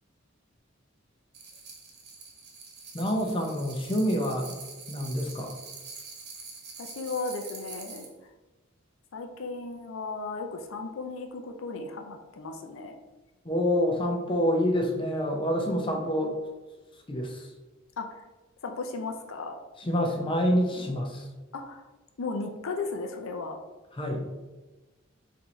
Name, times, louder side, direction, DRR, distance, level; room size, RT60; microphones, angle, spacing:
sound 1, 1.3-8.1, right 4 dB, 55° right, 1.1 m, -45 dB
voice 1, 2.9-4.6 4.9-5.5 13.4-16.3 17.1-17.5 19.8-21.3 23.9-24.3, equal, 25° left, 1 dB, 0.7 m, -27 dB
voice 2, 6.8-8.1 9.1-12.9 15.7-16.0 18.0-18.2 18.6-19.6 20.7-21.0 21.5-21.9 22.2-23.6, left 3 dB, 80° left, 4 dB, 0.5 m, -36 dB
4.5 x 2.7 x 4.3 m, 1.2 s
head